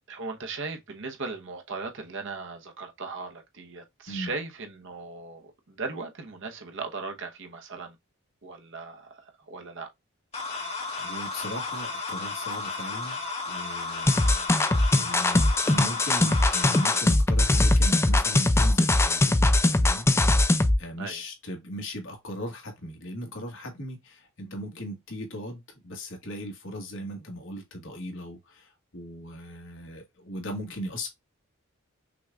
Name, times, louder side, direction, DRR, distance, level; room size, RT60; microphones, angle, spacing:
voice 1, 0.1-7.9 8.4-9.9 14.2-14.5 21.0-21.2, right 4 dB, 60° right, 1.0 m, -38 dB
sound 1, 10.3-17.0, left 3 dB, 30° left, 1.6 m, -34 dB
voice 2, 11.0-13.2 13.5-14.2 14.9-19.4 19.7-20.1 20.8-31.1, equal, 60° left, 1.6 m, -38 dB
sound 2, 13.2-16.0, left 1 dB, 90° left, 1.9 m, -52 dB
sound 3, 14.1-20.8, left 2 dB, 10° left, 0.3 m, -21 dB
6.0 x 2.4 x 3.4 m
head